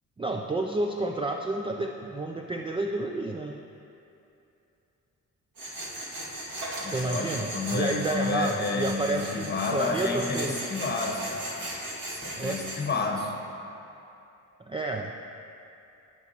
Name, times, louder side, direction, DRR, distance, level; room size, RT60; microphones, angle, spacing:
voice 1, 0.2-3.6 6.9-10.6 12.4-12.6 14.7-15.1, right 2 dB, 15° right, 2 dB, 0.3 m, -30 dB
Tools, 5.6-12.8, right 1 dB, 75° right, 2.2 m, -37 dB
voice 2, 6.8-11.5 12.1-13.3, left 3 dB, 30° left, 1 dB, 1.3 m, -30 dB
15.5 x 6.0 x 2.9 m, 2.8 s
cardioid pair, 100°, 34 cm